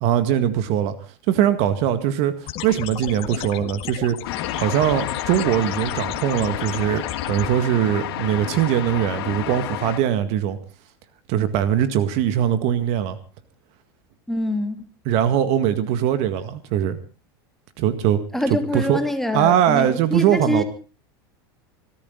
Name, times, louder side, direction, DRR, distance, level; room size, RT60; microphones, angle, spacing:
voice 1, 0.0-0.9 1.3-2.3 2.6-4.2 4.5-10.6 11.3-13.2 15.1-17.0 17.8-18.2 18.5-19.0 19.3-20.6, right 10 dB, 60° right, 11 dB, 1.9 m, -21 dB
sound 1, 2.5-7.5, left 14 dB, 50° left, 1.7 m, -33 dB
sound 2, 4.3-10.0, left 11 dB, 75° left, 2.9 m, -30 dB
voice 2, 14.3-14.8 18.3-20.6, left 1 dB, ahead, 6 dB, 2.7 m, -25 dB
24.5 x 14.0 x 4.0 m, 0.34 s
supercardioid pair, 110°, 13 cm